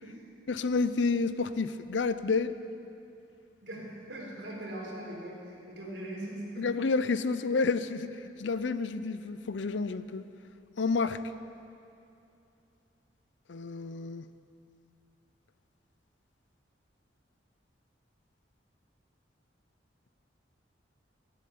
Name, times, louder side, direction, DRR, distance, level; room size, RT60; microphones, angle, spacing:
voice 1, 0.5-2.5 6.6-8.1 8.4-10.3 10.8-11.2 13.5-14.2, left 4 dB, 80° left, 13 dB, 0.6 m, -29 dB
voice 2, 3.6-6.8, right 1 dB, 75° right, -3 dB, 4.2 m, -41 dB
13.5 x 11.0 x 9.4 m, 2.7 s
head